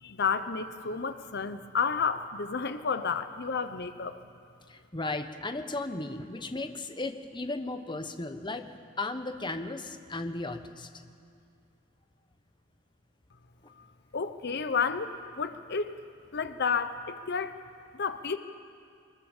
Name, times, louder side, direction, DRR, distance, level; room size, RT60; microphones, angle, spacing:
voice 1, 0.0-4.2 13.8-13.9 14.1-15.1 15.4-15.9 16.3-17.5 17.9-18.4, left 5 dB, 55° left, 10 dB, 0.8 m, -31 dB
voice 2, 4.7-8.7 9.0-10.9, left 2 dB, 25° left, 8 dB, 1.1 m, -35 dB
23.5 x 20.5 x 7.3 m, 2.3 s
head